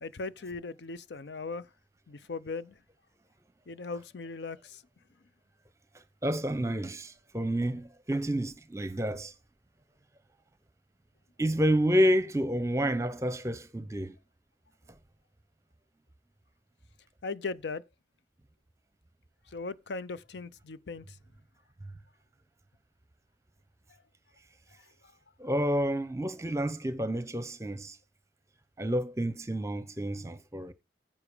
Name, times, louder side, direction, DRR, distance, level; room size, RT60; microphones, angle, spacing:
voice 1, 0.0-1.7 2.1-2.8 3.7-4.8 17.2-17.8 19.5-21.2 25.0-25.1, left 3 dB, 75° left, 0.6 m, -38 dB
voice 2, 6.2-9.3 11.4-14.2 25.4-28.0 28.8-30.7, equal, 15° right, 0.8 m, -29 dB
9.9 x 7.6 x 4.9 m
head